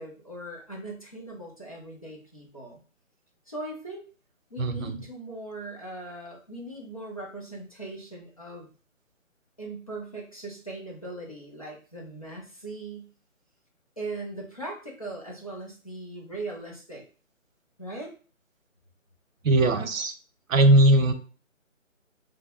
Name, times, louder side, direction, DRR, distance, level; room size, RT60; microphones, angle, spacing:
voice 1, 0.0-2.8 3.5-4.0 4.5-8.7 9.6-13.1 14.0-17.0 17.8-18.1, right 2 dB, 30° left, -4 dB, 0.5 m, -39 dB
voice 2, 4.6-5.0 19.4-20.1 20.5-21.1, right 1 dB, 85° right, 7 dB, 0.7 m, -19 dB
2.6 x 2.1 x 3.6 m, 0.38 s
hypercardioid pair, 165°, 39 cm